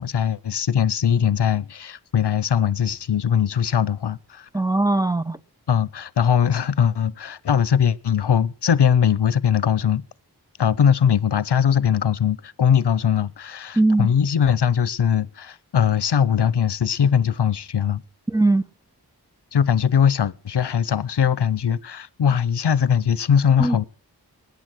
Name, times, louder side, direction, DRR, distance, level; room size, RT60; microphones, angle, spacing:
voice 1, 0.0-4.5 5.7-10.0 10.6-18.0 19.5-23.8, left 8 dB, 80° left, 0.6 m, -20 dB
voice 2, 4.5-5.4 13.8-14.1 18.3-18.6 23.6-23.8, right 2 dB, 10° right, 0.6 m, -20 dB
20.5 x 9.6 x 6.1 m
wide cardioid pair, 60°, 40 cm